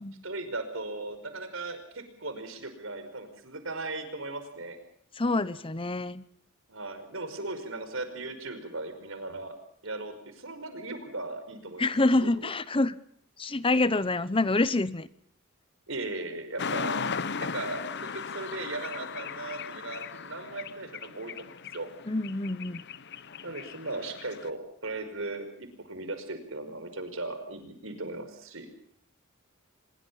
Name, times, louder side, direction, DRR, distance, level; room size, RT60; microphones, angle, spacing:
voice 1, 0.2-4.8 6.7-9.6 9.8-11.9 12.2-12.5 15.9-17.0 17.4-21.9 23.4-28.7, right 2 dB, 65° right, 5.4 m, -37 dB
voice 2, 5.2-6.2 11.8-12.9 13.4-15.1 22.1-22.8, left 2 dB, 25° left, 0.8 m, -26 dB
sound 1, 16.6-24.5, left 5 dB, 55° left, 1.1 m, -37 dB
25.5 x 22.0 x 5.6 m
head